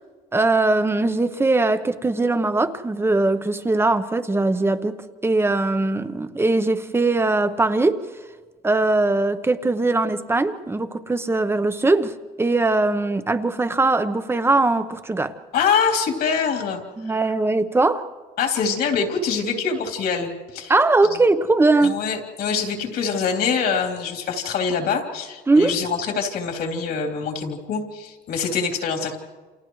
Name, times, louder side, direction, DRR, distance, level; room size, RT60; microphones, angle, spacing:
voice 1, 0.3-5.0 5.2-8.0 8.6-15.4 17.0-18.1 20.7-22.0 25.5-25.7, right 2 dB, 15° right, 0.9 m, -20 dB
voice 2, 15.5-16.8 18.4-20.7 21.8-29.2, left 6 dB, 70° left, 3.3 m, -24 dB
29.0 x 28.0 x 3.2 m
cardioid pair, 110°, 17 cm